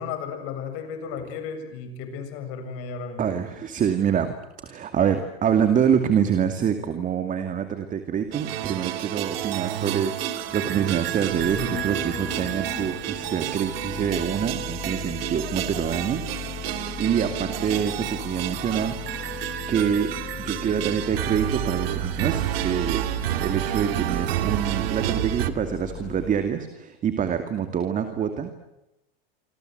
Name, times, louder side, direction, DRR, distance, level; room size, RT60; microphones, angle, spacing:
voice 1, 0.0-3.3, left 6 dB, 50° left, 8 dB, 7.4 m, -34 dB
voice 2, 3.2-4.4 4.6-16.2 16.7-19.4 19.7-20.1 20.4-23.0 23.4-28.7, right 8 dB, 25° right, 8 dB, 2.4 m, -26 dB
Engine starting, 8.2-26.6, left 10 dB, 25° left, 1.5 m, -39 dB
sound 1, 8.3-25.5, right 13 dB, 70° right, 2.4 m, -30 dB
26.5 x 26.5 x 8.0 m, 0.92 s
supercardioid pair, 130°, 30 cm